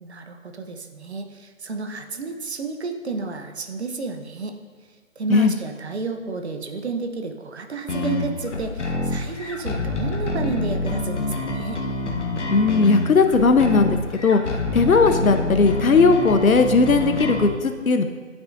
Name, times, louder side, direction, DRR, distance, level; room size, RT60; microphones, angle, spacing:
voice 1, 0.0-4.6 5.2-11.8, right 3 dB, 50° right, 6 dB, 0.9 m, -31 dB
sound 1, 7.9-17.5, left 2 dB, 55° left, 1.3 m, -27 dB
voice 2, 12.5-14.4 14.7-18.0, left 4 dB, 85° left, 7 dB, 0.9 m, -17 dB
12.0 x 6.4 x 2.6 m, 1.5 s
figure-of-eight pair, 165°, 41 cm